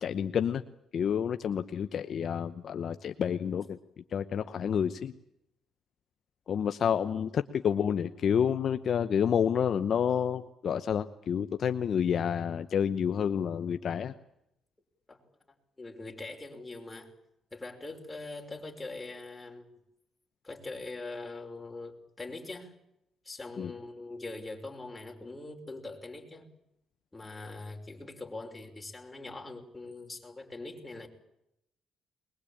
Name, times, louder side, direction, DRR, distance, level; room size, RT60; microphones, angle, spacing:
voice 1, 0.0-0.6 0.9-3.8 4.1-5.1 6.5-14.1 23.6-23.7, left 8 dB, 60° left, 9 dB, 0.9 m, -29 dB
voice 2, 15.8-17.1 17.5-19.8 20.4-22.7 23.2-26.5 27.1-31.1, left 2 dB, 20° left, 2 dB, 5.7 m, -42 dB
22.0 x 22.0 x 8.7 m, 0.81 s
cardioid pair, 80°, 0 cm